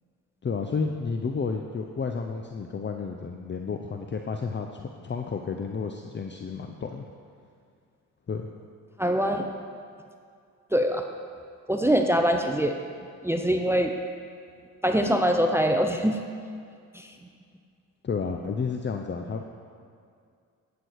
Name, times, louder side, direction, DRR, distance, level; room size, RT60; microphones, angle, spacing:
voice 1, 0.4-7.1 8.3-8.5 18.0-19.5, left 5 dB, 30° left, 4 dB, 0.7 m, -31 dB
voice 2, 9.0-9.5 10.7-11.0 11.7-12.8 13.2-13.9 14.8-16.2 16.9-17.1, equal, 5° right, 4 dB, 0.7 m, -23 dB
13.0 x 8.3 x 4.8 m, 2.3 s
supercardioid pair, 70°, 35 cm